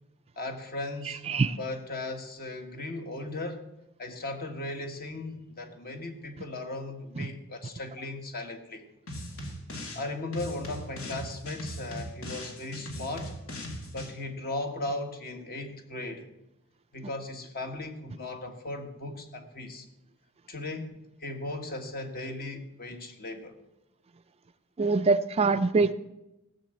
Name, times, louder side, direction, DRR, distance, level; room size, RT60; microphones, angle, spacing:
voice 1, 0.3-3.6 4.0-8.8 9.9-13.3 13.9-16.3 16.9-19.8 20.5-23.5, left 2 dB, 45° left, 5 dB, 1.7 m, -37 dB
sound 1, 9.1-10.0 10.3-14.1, left 1 dB, 75° left, 2.5 m, -39 dB
voice 2, 24.8-25.9, right 4 dB, 30° right, 11 dB, 0.4 m, -23 dB
16.0 x 6.9 x 7.7 m, 0.92 s
head